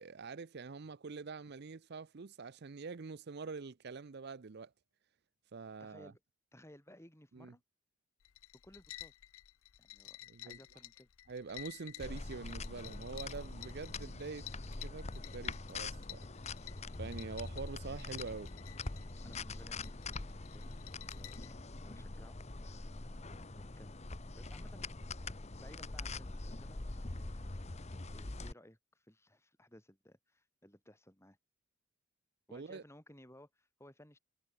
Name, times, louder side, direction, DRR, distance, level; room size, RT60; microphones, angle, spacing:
voice 1, 0.0-4.7 5.5-6.1 7.3-7.5 10.3-10.6 11.3-14.5 14.8-15.1 15.3-16.3 17.0-18.5 32.5-32.8, right 4 dB, 50° right, 0.5 m, -45 dB
voice 2, 5.8-6.2 6.5-7.6 8.6-9.1 9.8-11.1 19.2-22.9 23.2-25.1 25.6-26.9 27.1-27.6 28.1-31.4 32.5-34.2, left 1 dB, 10° left, 6.4 m, -60 dB
sound 1, 8.2-21.5, left 15 dB, 70° left, 0.5 m, -53 dB
sound 2, 12.0-28.5, left 3 dB, 30° left, 1.0 m, -44 dB
head